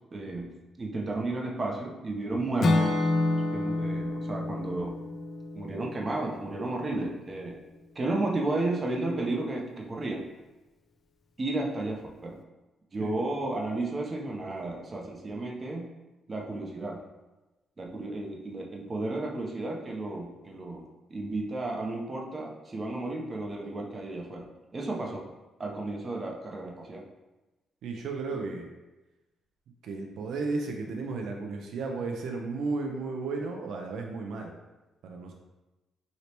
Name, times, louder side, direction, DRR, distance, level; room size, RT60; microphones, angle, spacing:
voice 1, 0.1-2.9 3.5-4.9 5.5-7.5 8.0-10.2 11.4-12.3 12.9-15.8 16.3-17.0 17.8-24.5 24.7-25.2 25.6-27.0 28.3-28.4, right 2 dB, 30° right, 0 dB, 0.6 m, -33 dB
Acoustic guitar / Strum, 2.6-6.7, left 2 dB, 55° left, 0.3 m, -28 dB
voice 2, 27.8-28.7 29.8-34.5 35.0-35.3, right 3 dB, 75° right, 2 dB, 0.4 m, -34 dB
3.2 x 2.8 x 2.8 m, 1.1 s
cardioid pair, 90°, 0 cm